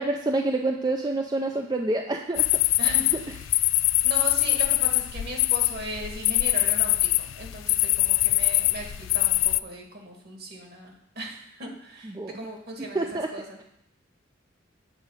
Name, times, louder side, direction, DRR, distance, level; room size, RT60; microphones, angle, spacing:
voice 1, 0.0-2.5 2.8-3.0 12.0-12.4 12.9-13.3, right 2 dB, 20° right, 3 dB, 0.5 m, -27 dB
sound 1, 2.3-9.6, left 17 dB, 80° left, 0.3 m, -23 dB
voice 2, 2.8-3.4 4.0-13.6, right 1 dB, 55° right, 1 dB, 2.0 m, -38 dB
8.2 x 4.9 x 7.3 m, 0.79 s
head